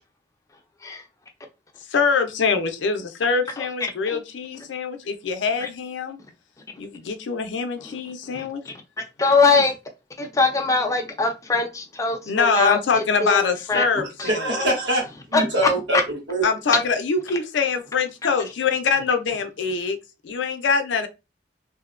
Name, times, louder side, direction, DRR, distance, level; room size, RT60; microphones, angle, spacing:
voice 1, 1.9-6.2 6.8-8.6 12.3-14.6 16.4-20.0 20.2-21.1, left 5 dB, 85° left, 0.4 m, -24 dB
voice 2, 9.2-9.7 10.2-13.8 14.2-14.3 15.3-15.4, left 4 dB, 20° left, 0.4 m, -22 dB
voice 3, 13.9-16.4, right 1 dB, 80° right, 1.1 m, -24 dB
2.6 x 2.1 x 2.3 m
head